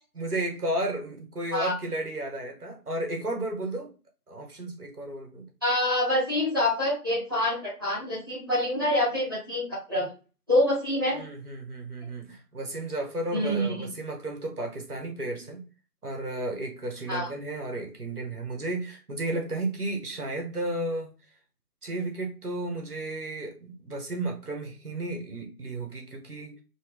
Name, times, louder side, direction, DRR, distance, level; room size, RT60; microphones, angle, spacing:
voice 1, 0.2-3.9 4.3-5.5 11.1-15.6 16.0-21.1 21.8-26.6, right 1 dB, 65° right, 2 dB, 1.6 m, -33 dB
voice 2, 5.6-10.1 10.5-11.2 13.3-13.9 17.1-17.3, left 1 dB, 15° right, -9 dB, 1.1 m, -26 dB
4.3 x 2.2 x 3.5 m, 0.34 s
figure-of-eight pair, 160°, 48 cm